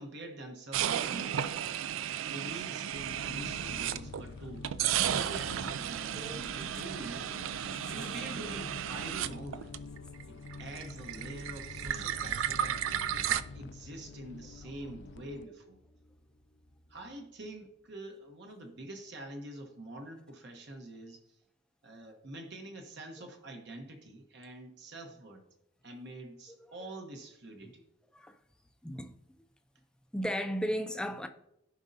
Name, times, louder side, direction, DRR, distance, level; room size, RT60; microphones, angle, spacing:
voice 1, 0.0-1.6 2.3-7.4 7.9-9.7 10.3-15.8 16.9-21.4 21.8-25.4 25.8-27.8, right 1 dB, 60° right, 1.0 m, -46 dB
sound 1, 0.7-4.3 4.6-10.2 10.5-13.4, right 10 dB, 75° right, 0.3 m, -34 dB
sound 2, 2.9-15.5, left 4 dB, 60° left, 0.4 m, -47 dB
sound 3, 7.2-18.1, left 1 dB, 80° left, 1.1 m, -60 dB
voice 2, 28.8-29.1 30.1-31.3, equal, 5° left, 0.4 m, -35 dB
15.0 x 5.1 x 2.7 m
head